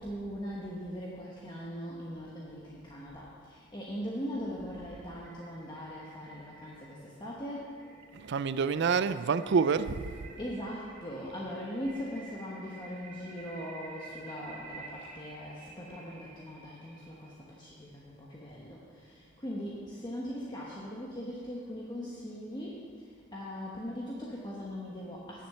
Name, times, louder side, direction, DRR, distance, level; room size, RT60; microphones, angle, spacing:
voice 1, 0.0-7.9 10.4-25.5, equal, 20° left, -5 dB, 1.1 m, -40 dB
sound 1, 4.0-17.4, right 3 dB, 40° right, 2.6 m, -52 dB
voice 2, 8.1-10.1, right 5 dB, 60° right, 14 dB, 0.4 m, -27 dB
10.0 x 7.3 x 6.9 m, 2.1 s
head